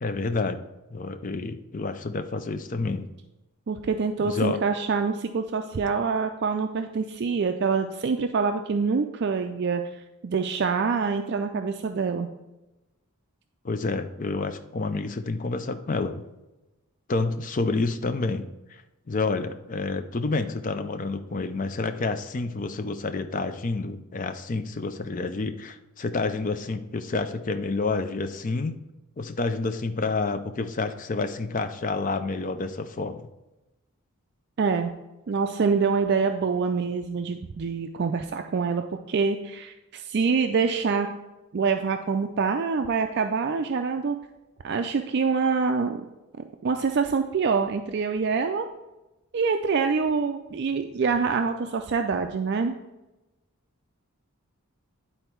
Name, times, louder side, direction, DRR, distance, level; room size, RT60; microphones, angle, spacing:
voice 1, 0.0-0.6 0.9-3.1 4.2-4.6 13.6-16.2 17.1-18.5 19.1-28.8 29.2-33.3, left 3 dB, 35° left, 9 dB, 0.5 m, -29 dB
voice 2, 3.7-9.8 10.2-12.3 34.6-34.9 35.3-41.2 41.5-44.2 44.6-46.0 46.6-48.7 49.3-52.8, right 5 dB, 50° right, 6 dB, 0.4 m, -25 dB
10.0 x 4.3 x 4.5 m, 1.0 s
head